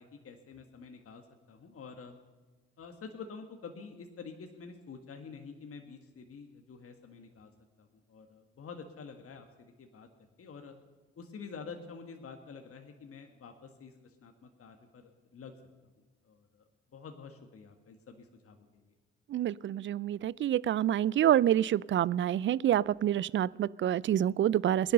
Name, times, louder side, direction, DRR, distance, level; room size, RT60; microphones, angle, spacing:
voice 1, 0.0-2.2 2.8-7.5 7.8-10.1 10.4-10.7 11.2-15.5 16.2-16.6 16.9-18.9, left 5 dB, 50° left, 5 dB, 1.7 m, -48 dB
voice 2, 19.3-24.9, right 11 dB, 45° right, 24 dB, 0.4 m, -27 dB
19.0 x 10.5 x 6.7 m, 1.2 s
hypercardioid pair, 45°, 29 cm